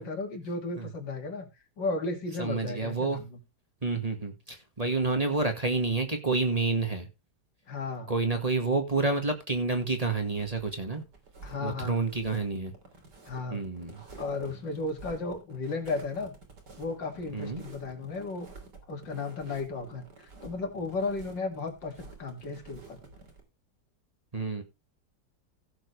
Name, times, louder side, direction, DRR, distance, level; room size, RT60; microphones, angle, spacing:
voice 1, 0.0-1.5 1.8-3.4 7.7-8.1 11.4-12.0 13.2-13.6 14.2-16.3 16.8-18.5 18.9-23.0, left 3 dB, 85° left, 4 dB, 3.2 m, -34 dB
voice 2, 2.4-3.2 3.8-7.1 8.1-11.0 11.6-12.7 13.5-14.0 17.3-17.6 24.3-24.6, right 3 dB, 20° right, 5 dB, 1.8 m, -29 dB
sound 1, 10.3-23.4, right 3 dB, 65° right, 3.6 m, -50 dB
15.5 x 7.5 x 3.3 m, 0.26 s
omnidirectional pair, 1.9 m